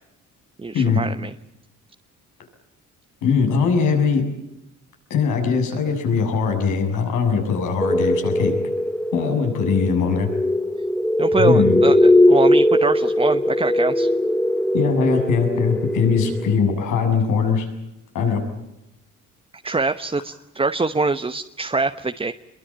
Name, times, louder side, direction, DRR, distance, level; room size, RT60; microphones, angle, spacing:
voice 1, 0.6-1.3 11.2-14.1 19.6-22.3, right 3 dB, 20° right, 8 dB, 1.1 m, -24 dB
voice 2, 3.2-4.3 5.1-8.5 9.1-10.3 11.4-11.8 14.7-17.7 18.1-18.4, left 5 dB, 85° left, 4 dB, 7.1 m, -21 dB
sound 1, 7.8-16.5, left 1 dB, 5° left, 1.2 m, -19 dB
25.5 x 23.0 x 8.8 m, 0.86 s
cardioid pair, 90°, 30 cm